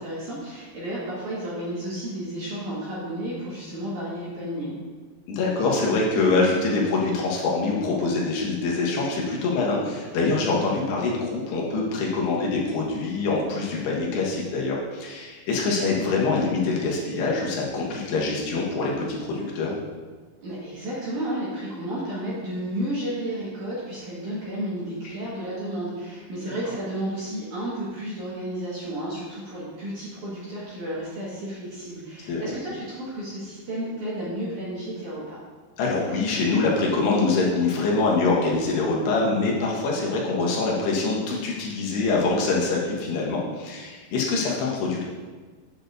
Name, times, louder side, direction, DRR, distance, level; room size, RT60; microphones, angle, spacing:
voice 1, 0.0-4.8 20.4-35.4, right 1 dB, 55° right, -8 dB, 2.4 m, -32 dB
voice 2, 5.3-19.7 32.3-32.5 35.8-45.1, left 3 dB, 75° left, -3 dB, 2.9 m, -24 dB
8.6 x 7.7 x 2.6 m, 1.4 s
omnidirectional pair, 5.1 m